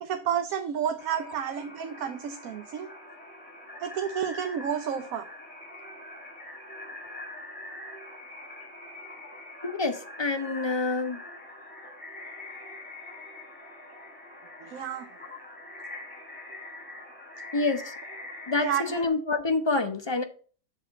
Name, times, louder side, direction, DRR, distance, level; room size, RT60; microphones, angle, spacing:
voice 1, 0.0-2.9 3.8-5.3 14.6-15.1 18.6-19.0, right 8 dB, 75° right, 1.1 m, -30 dB
sound 1, 1.0-19.1, left 1 dB, 5° left, 2.5 m, -44 dB
voice 2, 9.6-11.2 17.5-17.9 18.5-20.2, left 3 dB, 35° left, 0.4 m, -27 dB
7.4 x 3.7 x 6.3 m
omnidirectional pair, 1.5 m